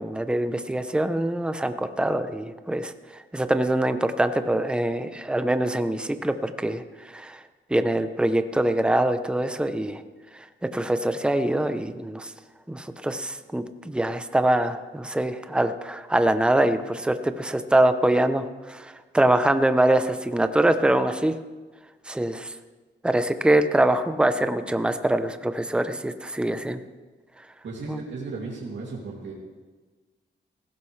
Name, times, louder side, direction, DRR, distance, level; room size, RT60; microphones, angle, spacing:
voice 1, 0.0-6.8 7.1-7.4 7.7-10.0 10.7-12.3 12.7-21.3 22.1-22.5 23.0-26.8 27.9-28.0, right 1 dB, 5° right, 9 dB, 0.7 m, -24 dB
voice 2, 27.6-29.3, right 3 dB, 70° right, -4 dB, 2.7 m, -35 dB
18.5 x 16.0 x 3.3 m, 1.3 s
wide cardioid pair, 110°, 19 cm